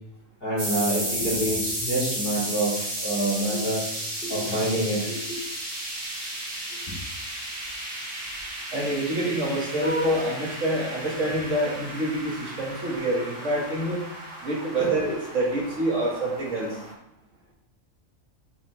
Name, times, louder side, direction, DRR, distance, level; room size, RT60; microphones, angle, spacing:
voice 1, 0.4-3.8 4.2-5.4 6.7-6.8 9.8-10.2 14.8-14.9, right 1 dB, 45° left, -5 dB, 3.5 m, -27 dB
sound 1, 0.6-16.9, right 1 dB, 85° right, 4.0 m, -34 dB
voice 2, 8.7-14.0 14.4-16.8, right 1 dB, 65° right, -3 dB, 2.5 m, -27 dB
8.4 x 7.1 x 3.5 m, 0.79 s
omnidirectional pair, 1.4 m